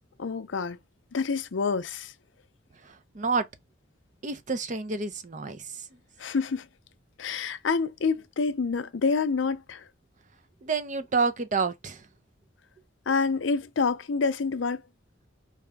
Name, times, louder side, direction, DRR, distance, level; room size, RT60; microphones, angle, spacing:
voice 1, 0.2-0.8 1.1-2.1 6.2-6.7 7.2-9.8 13.1-14.8, left 4 dB, 80° left, 0.5 m, -27 dB
voice 2, 2.8-3.4 4.2-5.9 10.6-12.0, right 4 dB, 40° right, 0.6 m, -29 dB
4.8 x 2.5 x 3.4 m
head